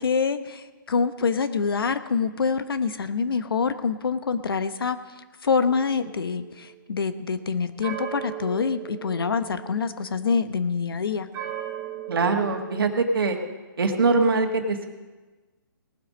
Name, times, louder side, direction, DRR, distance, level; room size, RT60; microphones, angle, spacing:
voice 1, 0.0-5.0 5.4-11.3, left 5 dB, 80° left, 11 dB, 1.0 m, -26 dB
sound 1, 5.6-6.8 7.8-10.3 11.3-13.2, right 11 dB, 15° right, 1.0 m, -38 dB
voice 2, 12.1-13.4 13.8-14.9, right 3 dB, 75° right, 4 dB, 1.7 m, -22 dB
19.0 x 7.8 x 5.2 m, 1.3 s
hypercardioid pair, 165°, 12 cm